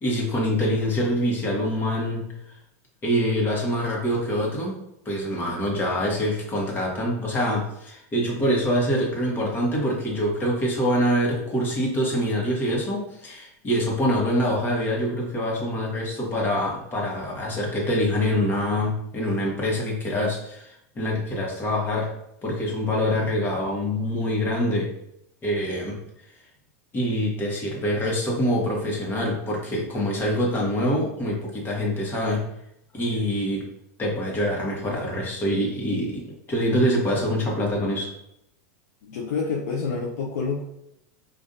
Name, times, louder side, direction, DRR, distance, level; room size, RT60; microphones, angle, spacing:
voice 1, 0.0-2.2 2.5-2.6 3.0-4.7 5.0-22.1 22.4-24.9 25.4-25.9 26.9-32.4 32.9-33.6 34.0-36.1 36.5-38.1, equal, 25° left, -2 dB, 1.3 m, -25 dB
voice 2, 39.0-40.6, left 4 dB, 80° left, -3 dB, 0.6 m, -28 dB
5.2 x 2.6 x 2.6 m, 0.79 s
supercardioid pair, 125°, 9 cm